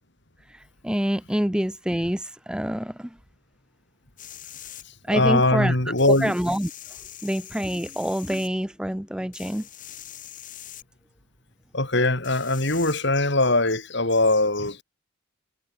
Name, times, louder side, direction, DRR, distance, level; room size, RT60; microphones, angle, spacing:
voice 1, 0.5-3.1 5.1-5.8 6.2-6.7 7.2-9.7, equal, 5° right, 0.6 m, -26 dB
sound 1, 4.2-4.8 6.0-8.5 9.3-10.8 12.2-12.9, left 12 dB, 40° left, 5.9 m, -43 dB
voice 2, 4.8-6.3 11.7-14.8, left 2 dB, 55° left, 3.9 m, -21 dB
head